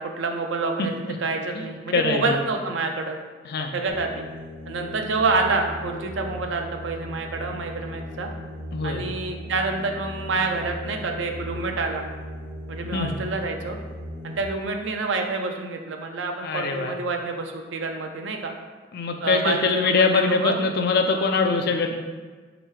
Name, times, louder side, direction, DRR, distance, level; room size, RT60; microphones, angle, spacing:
voice 1, 0.0-0.9 1.2-3.2 3.7-4.3 4.7-8.3 8.8-12.1 12.7-13.8 14.2-18.5 19.2-20.5, right 3 dB, 70° right, 3 dB, 0.5 m, -27 dB
voice 2, 0.8-1.1 1.6-1.7 1.9-2.4 3.4-3.7 8.7-9.0 12.9-13.1 16.4-16.9 18.9-22.0, left 4 dB, 55° left, 4 dB, 0.4 m, -23 dB
sound 1, 3.9-14.4, equal, 25° right, 0.6 m, -37 dB
3.6 x 3.0 x 4.7 m, 1.4 s
head